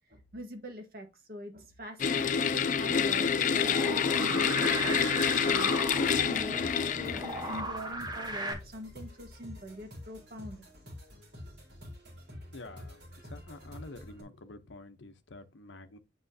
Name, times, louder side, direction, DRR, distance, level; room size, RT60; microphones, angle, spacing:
voice 1, 0.1-10.6, equal, 50° right, 1.4 m, -44 dB
sound 1, 2.0-7.6, left 6 dB, 45° left, 0.4 m, -28 dB
sound 2, 3.5-8.5, right 1 dB, 20° right, 1.1 m, -36 dB
sound 3, 5.8-14.2, left 1 dB, 70° right, 4.1 m, -48 dB
voice 2, 12.5-16.0, left 2 dB, 80° left, 0.8 m, -48 dB
7.9 x 5.7 x 2.7 m
head